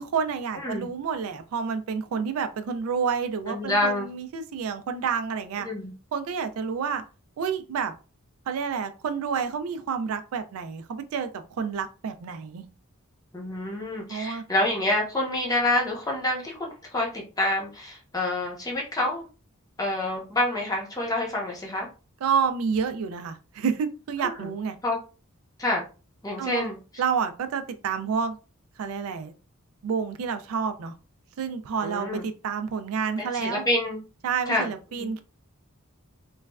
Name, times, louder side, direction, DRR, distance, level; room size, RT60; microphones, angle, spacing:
voice 1, 0.0-5.7 6.1-7.0 7.4-7.9 8.5-12.6 14.1-14.4 22.2-24.8 26.4-26.7 27.0-28.4 28.8-29.3 29.8-30.9 31.4-33.6 34.2-35.2, right 6 dB, 75° right, 9 dB, 0.3 m, -29 dB
voice 2, 0.6-0.9 3.5-4.1 5.6-5.9 13.3-19.3 19.8-21.9 24.2-24.5 24.8-25.0 25.6-25.8 26.2-26.8 31.8-32.2 33.2-34.0 34.5-34.7 35.0-35.1, left 1 dB, 15° left, -1 dB, 0.7 m, -27 dB
3.1 x 2.3 x 2.2 m, 0.33 s
head